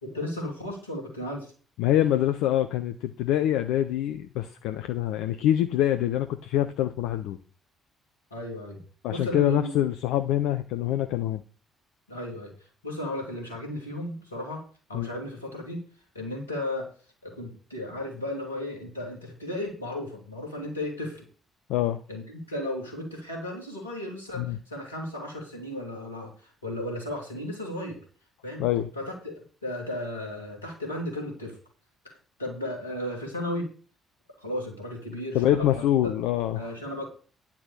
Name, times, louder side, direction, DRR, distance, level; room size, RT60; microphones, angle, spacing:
voice 1, 0.0-1.5 8.3-8.8 9.1-9.7 12.1-12.5 12.8-14.6 14.9-15.8 16.1-16.9 17.2-21.3 22.1-28.0 28.4-28.6 28.9-31.6 32.0-32.1 32.4-33.7 34.4-36.1 36.6-37.1, left 1 dB, 85° left, 0 dB, 2.6 m, -35 dB
voice 2, 1.8-7.4 9.0-11.4 14.9-15.1 21.7-22.0 24.4-24.6 28.6-28.9 35.3-36.7, left 12 dB, 65° left, 10 dB, 0.6 m, -25 dB
9.9 x 6.0 x 6.6 m, 0.39 s
figure-of-eight pair, 45°, 0 cm